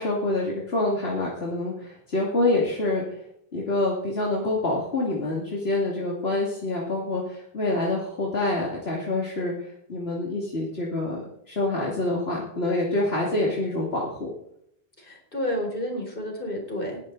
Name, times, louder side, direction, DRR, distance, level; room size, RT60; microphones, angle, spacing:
voice 1, 0.0-3.0 3.5-9.5 9.9-14.3, left 2 dB, 80° left, -3 dB, 2.8 m, -26 dB
voice 2, 15.0-17.0, equal, 60° left, 1 dB, 4.4 m, -30 dB
19.5 x 11.0 x 4.0 m, 0.73 s
omnidirectional pair, 1.0 m